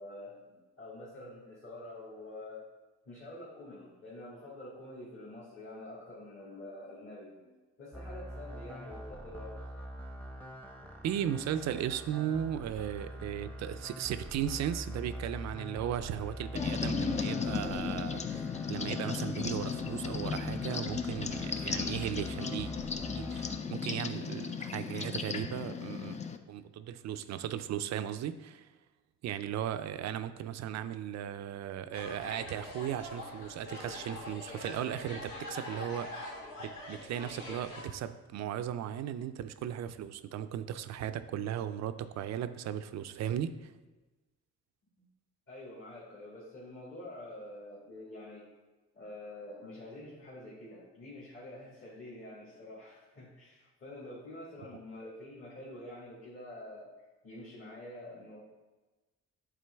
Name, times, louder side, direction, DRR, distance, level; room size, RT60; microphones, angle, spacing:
voice 1, 0.0-2.7 3.1-9.6 45.0-45.1 45.5-48.5 48.9-58.4, left 1 dB, 40° left, -6 dB, 1.8 m, -47 dB
sound 1, 7.9-23.6, equal, 5° left, 0.8 m, -44 dB
voice 2, 11.0-18.4 18.7-22.7 23.2-26.2 26.5-28.7 29.2-43.7, right 10 dB, 60° right, 11 dB, 0.4 m, -36 dB
sound 2, 16.5-26.4, left 6 dB, 25° left, 0.4 m, -35 dB
sound 3, 31.9-37.8, left 1 dB, 85° left, 1.9 m, -44 dB
8.3 x 3.7 x 3.4 m, 1.2 s
cardioid pair, 90°, 30 cm